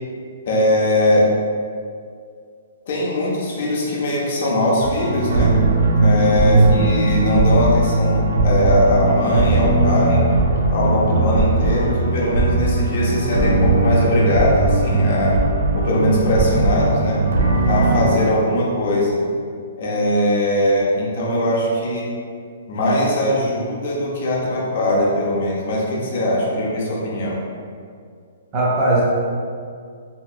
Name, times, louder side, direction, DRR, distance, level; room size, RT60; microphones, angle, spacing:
voice 1, 0.5-1.3 2.9-5.5 6.0-10.2 10.7-15.4 15.7-17.2 17.7-19.2 19.8-22.1 22.7-27.4, left 1 dB, 40° left, -5 dB, 0.6 m, -20 dB
sound 1, 4.8-18.0, right 2 dB, 85° right, 0.4 m, -18 dB
voice 2, 6.4-6.9 28.5-29.0, right 2 dB, 20° right, -7 dB, 0.4 m, -20 dB
3.0 x 2.7 x 2.3 m, 2.2 s
hypercardioid pair, 180°, 0 cm